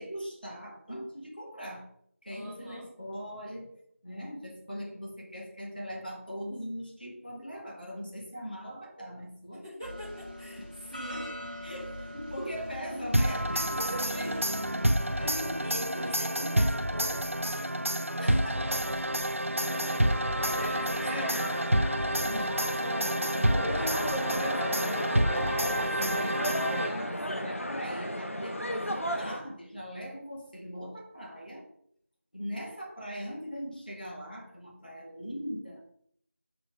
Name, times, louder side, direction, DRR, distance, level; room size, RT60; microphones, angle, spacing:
voice 1, 0.0-1.9 2.2-3.7 4.0-9.6 11.1-11.3 11.6-14.5 15.2-16.5 18.2-18.7 21.0-21.5 22.2-25.4 26.0-31.7 32.3-35.9, equal, 40° left, -2 dB, 1.8 m, -40 dB
voice 2, 2.3-2.9 9.6-11.5 12.7-12.8 14.0-14.8 15.6-18.6 20.3-22.7 26.1-26.6, equal, 20° left, -8 dB, 1.6 m, -44 dB
sound 1, 9.8-15.4, left 1 dB, 35° right, 1.0 m, -43 dB
sound 2, 13.1-27.3, right 1 dB, 60° right, 0.6 m, -29 dB
sound 3, 19.6-29.4, equal, 60° left, 1.0 m, -35 dB
7.0 x 3.9 x 6.3 m, 0.65 s
figure-of-eight pair, 180°, 8 cm